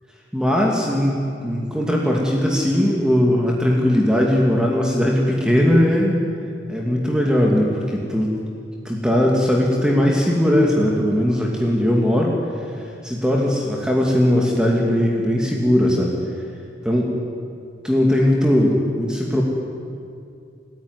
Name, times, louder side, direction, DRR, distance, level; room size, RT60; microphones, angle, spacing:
voice 1, 0.3-6.2 6.7-8.4 8.8-12.4 13.0-16.2 16.8-17.1 17.8-19.4, equal, 5° right, -1 dB, 2.5 m, -19 dB
27.5 x 14.5 x 9.9 m, 2.4 s
head